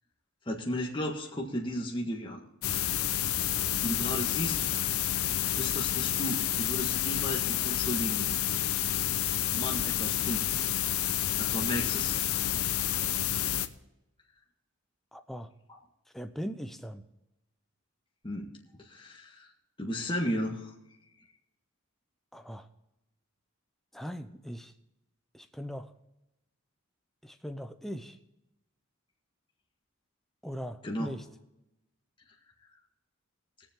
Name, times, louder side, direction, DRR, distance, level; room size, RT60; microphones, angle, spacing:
voice 1, 0.4-2.4 3.8-4.6 5.5-8.3 9.5-10.4 11.4-12.2 15.7-15.8 18.2-18.5 18.8-19.5 19.8-20.7 30.8-31.1, equal, 25° left, -1 dB, 1.6 m, -34 dB
sound 1, 2.6-13.7, left 11 dB, 85° left, 0.7 m, -29 dB
voice 2, 15.1-15.5 16.1-17.0 22.3-22.7 23.9-24.7 25.3-25.9 27.2-28.2 30.4-31.2, equal, ahead, 7 dB, 0.7 m, -39 dB
21.5 x 7.3 x 3.7 m, 0.90 s
head